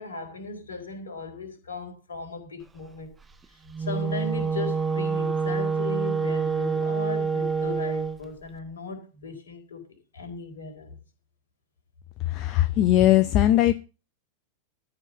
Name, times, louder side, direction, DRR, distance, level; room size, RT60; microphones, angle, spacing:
voice 1, 0.0-3.2 3.8-9.8 10.1-11.0, left 4 dB, 65° left, 3.9 m, -37 dB
Wind instrument woodwind instrument, 3.7-8.2, right 5 dB, 15° right, 0.8 m, -27 dB
voice 2, 12.3-13.7, left 13 dB, 40° left, 0.6 m, -19 dB
13.5 x 4.9 x 7.1 m
figure-of-eight pair, 90°, 0 cm